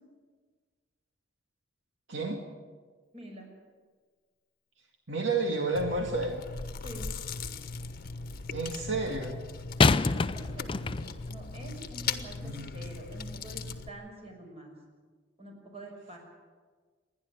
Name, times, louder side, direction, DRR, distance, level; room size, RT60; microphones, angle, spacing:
voice 1, 2.1-2.4 5.1-6.5 8.5-9.4 12.4-12.7, right 3 dB, 75° right, 2 dB, 2.1 m, -31 dB
voice 2, 3.1-3.5 6.8-7.1 9.9-14.7 15.4-16.2, right 1 dB, 35° right, 1 dB, 6.0 m, -46 dB
Chewing mastication, 5.7-13.9, left 4 dB, 50° left, 1.2 m, -39 dB
sound 1, 6.5-7.4 9.8-11.3 12.1-12.2, left 3 dB, 30° left, 0.5 m, -27 dB
28.5 x 11.0 x 9.1 m, 1.5 s
head